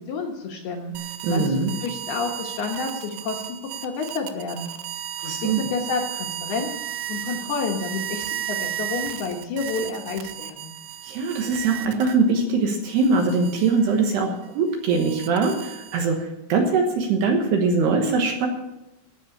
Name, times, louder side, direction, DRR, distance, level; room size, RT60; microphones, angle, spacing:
voice 1, 0.1-0.9 1.3-4.7 5.2-6.7 7.1-10.7, left 4 dB, 70° left, 1 dB, 2.6 m, -30 dB
sound 1, 1.0-12.4 12.9-16.2, right 12 dB, 90° right, 3.3 m, -34 dB
voice 2, 1.2-1.7 5.2-5.6 11.0-18.5, right 4 dB, 70° right, 3 dB, 2.9 m, -22 dB
14.5 x 6.3 x 8.6 m, 0.93 s
omnidirectional pair, 5.7 m